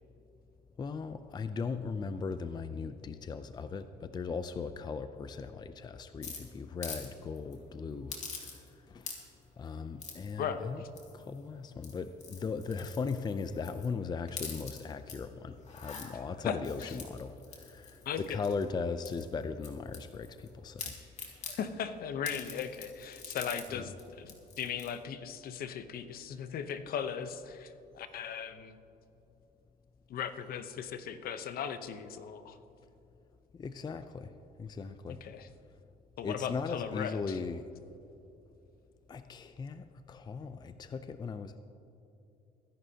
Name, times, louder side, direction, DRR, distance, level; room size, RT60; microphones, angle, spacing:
voice 1, 0.8-8.2 8.5-8.6 8.9-9.1 9.6-10.8 11.1-18.0 18.3-20.9 23.7-23.9 33.5-34.3 34.6-35.2 36.2-37.7 39.1-41.6, left 5 dB, 25° left, 10 dB, 0.5 m, -38 dB
sound 1, 6.2-7.1 7.4-7.5 8.1-8.7 9.0-9.4 10.0-10.3 11.0-11.4 11.7-13.9 14.3-15.2 15.6-16.1 16.6-18.6 19.0-20.5 20.8-21.6 22.2-23.7 24.0-24.1 24.3-24.9, left 5 dB, 40° left, 2.5 m, -45 dB
voice 2, 10.4-10.9 16.4-16.9 18.0-18.4 21.3-28.8 30.1-32.6 35.1-35.5 36.2-37.4, left 7 dB, 60° left, 10 dB, 0.9 m, -38 dB
23.0 x 11.0 x 2.9 m, 2.9 s
cardioid pair, 110°, 17 cm